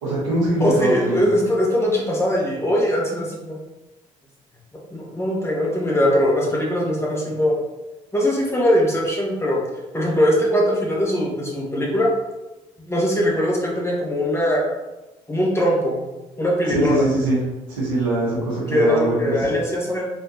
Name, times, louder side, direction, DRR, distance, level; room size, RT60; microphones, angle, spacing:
voice 1, 0.0-1.3 16.7-17.4 17.7-19.5, right 1 dB, 85° right, -4 dB, 1.2 m, -22 dB
voice 2, 0.6-3.6 4.9-7.6 8.1-9.6 9.9-12.1 12.8-14.6 15.3-16.0 16.4-17.1 18.7-20.1, equal, 15° left, -3 dB, 1.4 m, -21 dB
3.9 x 3.3 x 2.9 m, 1.0 s
hypercardioid pair, 55°, 16 cm